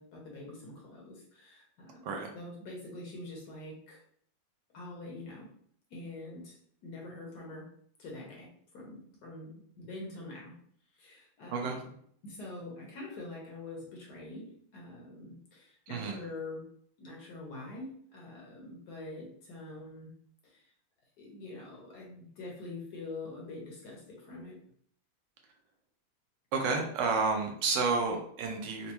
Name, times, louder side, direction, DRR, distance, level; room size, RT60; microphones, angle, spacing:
voice 1, 0.0-4.0 4.7-5.5 5.9-6.6 6.8-7.7 8.0-8.5 8.7-10.5 10.9-11.9 12.2-16.6 17.0-20.1 20.4-20.7 21.2-24.6, left 2 dB, 60° left, -2 dB, 1.3 m, -45 dB
voice 2, 15.9-16.2 26.5-28.9, right 4 dB, 75° right, 2 dB, 1.2 m, -30 dB
4.2 x 2.2 x 2.9 m, 0.63 s
omnidirectional pair, 2.1 m